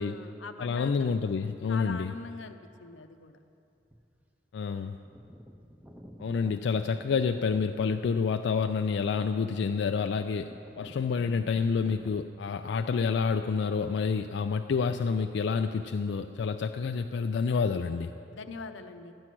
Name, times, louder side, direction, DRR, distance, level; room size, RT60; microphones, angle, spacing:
voice 1, 0.0-1.1 1.7-3.4 18.3-19.1, left 4 dB, 90° left, 9 dB, 0.7 m, -42 dB
voice 2, 0.6-2.1 4.5-5.0 6.2-10.5 10.8-18.1, left 5 dB, 65° left, 7 dB, 0.3 m, -28 dB
sound 1, 1.6-2.0 3.1-3.2 3.8-4.2 4.5-4.6 4.8-12.3, equal, 5° right, 0.6 m, -51 dB
12.5 x 9.8 x 6.0 m, 2.7 s
head